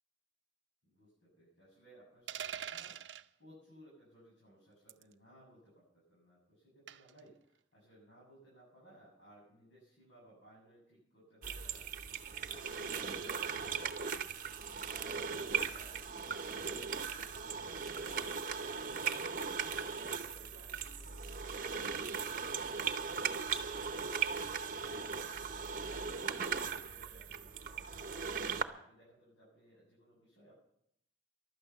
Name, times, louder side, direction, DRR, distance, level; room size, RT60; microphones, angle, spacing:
voice 1, 0.8-3.0 3.4-12.6 12.9-14.6 14.9-18.8 19.1-23.7 25.8-28.0 28.3-30.5, right 1 dB, 80° left, -6 dB, 8.0 m, -62 dB
sound 1, 2.3-3.3 4.9-5.1 6.9-7.2, right 9 dB, 80° right, 0.6 m, -43 dB
sound 2, 11.4-28.6, right 6 dB, 45° right, 0.8 m, -38 dB
15.5 x 12.0 x 5.8 m, 0.74 s
head